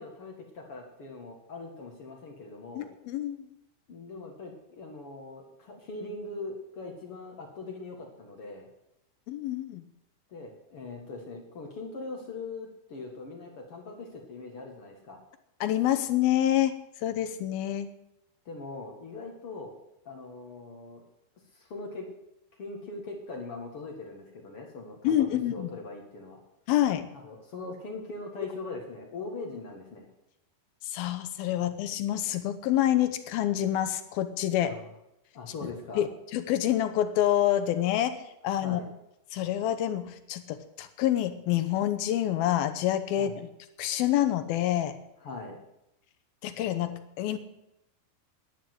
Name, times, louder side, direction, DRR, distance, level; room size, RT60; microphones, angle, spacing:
voice 1, 0.0-2.9 3.9-8.7 10.3-15.2 18.5-19.7 20.1-21.0 21.5-22.1 22.6-26.4 27.1-30.1 34.6-34.9 35.3-36.0 38.6-38.9 43.2-43.4 45.2-45.6, left 3 dB, 50° left, 1 dB, 1.9 m, -41 dB
voice 2, 2.7-3.5 9.3-9.8 15.6-17.9 25.0-25.7 26.7-27.1 30.8-34.8 36.0-38.2 38.4-38.8 39.3-43.5 43.8-45.0 46.4-47.4, left 12 dB, 75° left, 10 dB, 2.5 m, -27 dB
11.5 x 10.0 x 7.9 m, 0.85 s
omnidirectional pair, 5.0 m